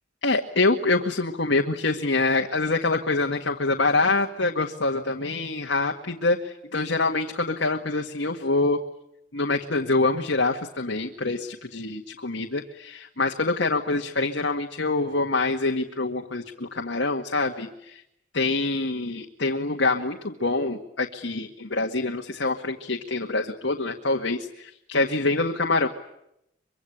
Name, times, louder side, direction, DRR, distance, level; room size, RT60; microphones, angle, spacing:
voice 1, 0.2-8.8 9.3-18.0 18.3-25.9, left 3 dB, 85° left, 2 dB, 1.9 m, -25 dB
24.5 x 24.5 x 10.0 m, 0.80 s
head